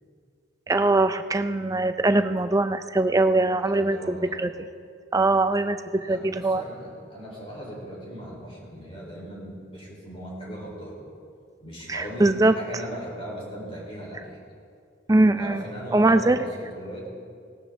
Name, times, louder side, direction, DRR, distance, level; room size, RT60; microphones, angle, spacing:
voice 1, 0.7-4.5 5.1-6.6 11.9-12.5 15.1-15.6 15.9-16.4, right 2 dB, 15° right, 9 dB, 0.4 m, -22 dB
voice 2, 3.6-4.4 6.0-11.0 11.6-14.4 15.4-17.1, equal, 30° left, -4 dB, 3.7 m, -38 dB
18.0 x 13.0 x 3.6 m, 2.3 s
head